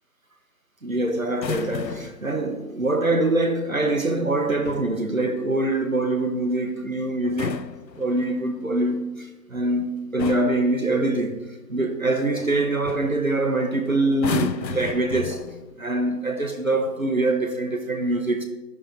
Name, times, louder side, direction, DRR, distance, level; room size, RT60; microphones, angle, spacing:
voice 1, 0.8-7.6 8.0-11.4 11.7-15.4 15.8-18.5, right 2 dB, 55° right, 1.0 m, -24 dB
sound 1, 1.3-2.3 4.4-5.0 7.2-8.5 9.6-9.8 10.2-10.7 12.4-12.5 12.8-13.2 14.1-15.8 16.7-17.0, left 6 dB, 85° left, 0.6 m, -33 dB
11.0 x 9.8 x 2.5 m
figure-of-eight pair, 165°, 49 cm